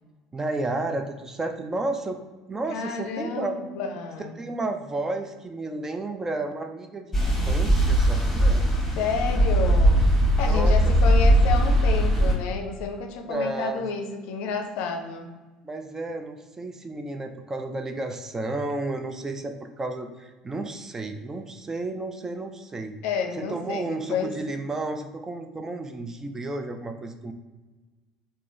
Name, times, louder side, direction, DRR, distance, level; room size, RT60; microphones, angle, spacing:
voice 1, 0.3-2.2 2.5-3.6 4.2-8.7 10.4-10.8 13.3-13.8 15.6-23.0 23.4-27.3, right 2 dB, 20° right, 6 dB, 0.4 m, -32 dB
voice 2, 2.7-4.3 9.0-10.1 10.4-15.3 23.0-24.3, left 5 dB, 55° left, 5 dB, 0.5 m, -30 dB
sound 1, 7.1-12.3, equal, 5° left, 1.4 m, -20 dB
3.7 x 2.8 x 3.2 m, 1.2 s
figure-of-eight pair, 65°, 3 cm